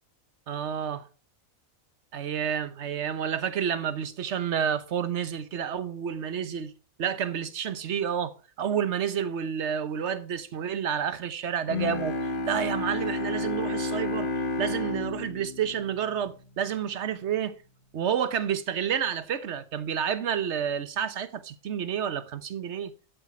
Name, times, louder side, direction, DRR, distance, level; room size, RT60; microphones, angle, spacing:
voice 1, 0.5-1.1 2.1-6.7 7.0-17.6 17.9-22.9, right 8 dB, 55° right, 1.2 m, -30 dB
Bowed string instrument, 11.7-16.8, left 2 dB, 40° left, 1.2 m, -31 dB
11.5 x 8.0 x 4.4 m
omnidirectional pair, 1.4 m